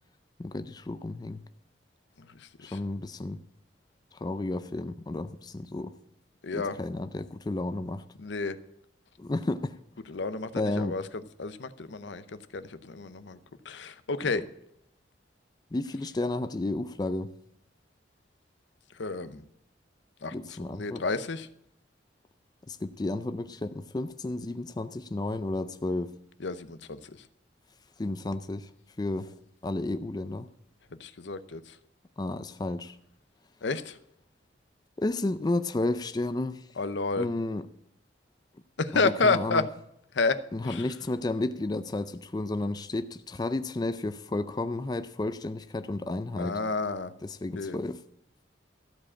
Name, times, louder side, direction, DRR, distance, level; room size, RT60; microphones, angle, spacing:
voice 1, 0.4-1.4 2.6-3.4 4.1-5.9 6.5-8.0 9.2-9.8 10.6-11.0 15.7-17.3 20.3-21.0 22.7-26.1 28.0-28.7 29.0-29.3 29.6-30.5 32.2-33.0 35.0-36.7 37.2-37.7 38.9-39.7 40.5-46.6 47.2-48.0, left 2 dB, 20° left, 11 dB, 0.4 m, -32 dB
voice 2, 2.2-2.8 6.4-6.8 8.2-8.6 10.1-11.0 11.4-13.4 13.6-14.4 18.9-19.4 20.2-20.3 20.7-21.5 26.4-27.2 31.0-31.8 33.6-34.0 36.8-37.3 38.8-39.6 40.1-40.9 46.4-47.1 47.6-47.8, left 3 dB, 75° left, 13 dB, 0.7 m, -30 dB
14.0 x 5.0 x 8.4 m, 0.77 s
head